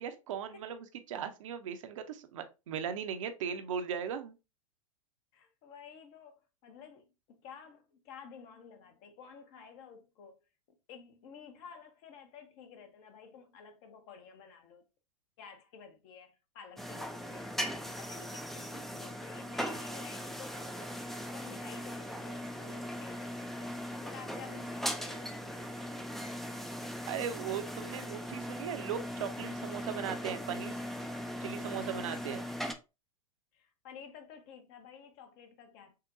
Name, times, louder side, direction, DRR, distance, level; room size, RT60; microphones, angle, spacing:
voice 1, 0.0-4.3 27.1-30.8 31.4-32.4, right 8 dB, 65° right, 0.7 m, -38 dB
voice 2, 5.3-10.4 10.9-14.8 15.4-20.9 21.3-26.0 33.5-36.0, left 6 dB, 45° left, 0.9 m, -52 dB
sound 1, 16.8-32.7, equal, ahead, 0.4 m, -39 dB
6.5 x 2.2 x 2.5 m
figure-of-eight pair, 95°, 18 cm